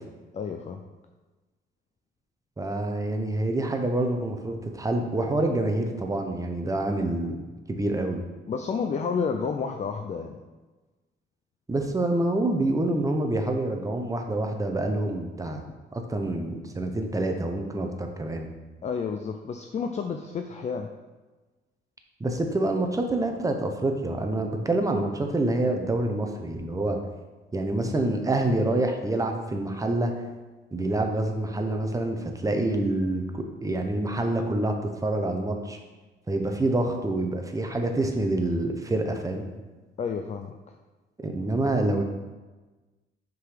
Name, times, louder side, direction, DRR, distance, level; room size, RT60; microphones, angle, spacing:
voice 1, 0.3-0.8 8.5-10.4 18.8-20.9 40.0-40.5, left 5 dB, 35° left, 5 dB, 0.4 m, -30 dB
voice 2, 2.6-7.4 7.7-8.2 11.7-15.6 15.9-18.5 22.2-27.0 27.5-30.1 30.7-35.8 36.3-39.4 41.2-42.0, right 2 dB, 15° right, 4 dB, 0.8 m, -27 dB
5.6 x 3.9 x 5.0 m, 1.2 s
cardioid pair, 90°, 20 cm